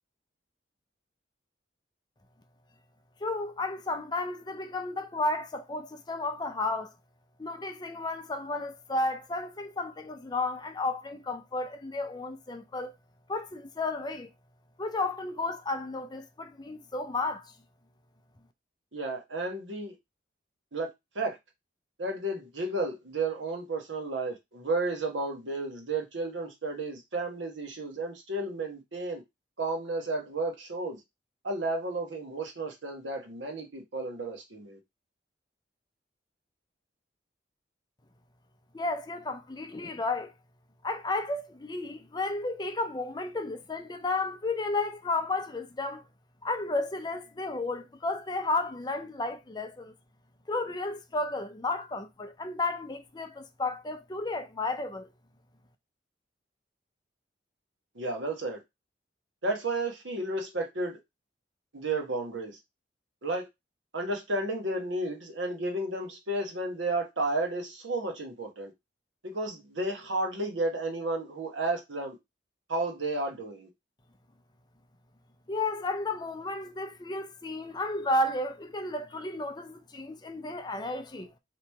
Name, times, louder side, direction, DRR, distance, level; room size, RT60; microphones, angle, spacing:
voice 1, 3.2-6.9 7.4-12.9 13.3-14.3 14.8-17.5 38.7-40.3 40.8-46.0 46.4-49.9 50.5-55.1 75.5-81.3, left 2 dB, 25° left, 0.5 m, -32 dB
voice 2, 18.9-20.0 20.7-20.9 21.1-21.4 22.0-29.2 29.6-31.0 31.4-34.8 57.9-58.6 59.4-61.0 61.7-62.6 63.2-63.5 63.9-68.7 69.2-72.2 72.7-73.7, right 2 dB, 85° right, 1.2 m, -32 dB
3.0 x 2.9 x 4.6 m
head